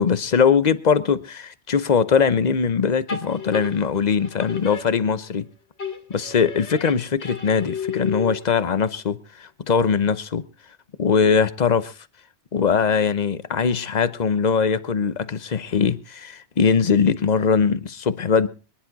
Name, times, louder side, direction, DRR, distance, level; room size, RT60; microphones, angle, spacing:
voice 1, 0.0-5.5 6.1-10.4 11.0-11.9 12.5-18.5, left 6 dB, 45° left, 0.9 m, -21 dB
sound 1, 3.1-5.4 5.8-8.6, left 5 dB, 85° left, 2.2 m, -34 dB
25.0 x 10.5 x 4.1 m
omnidirectional pair, 1.1 m